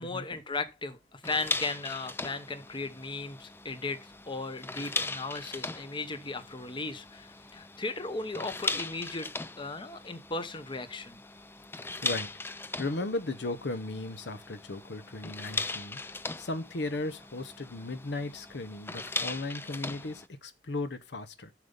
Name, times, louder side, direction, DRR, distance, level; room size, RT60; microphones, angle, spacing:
voice 1, 0.0-9.3 9.6-11.2, left 3 dB, 30° left, 1.0 m, -36 dB
sound 1, 1.2-20.3, left 3 dB, 15° left, 0.4 m, -39 dB
voice 2, 12.8-16.0 16.4-21.5, left 2 dB, 70° left, 0.9 m, -36 dB
7.5 x 6.7 x 5.4 m
head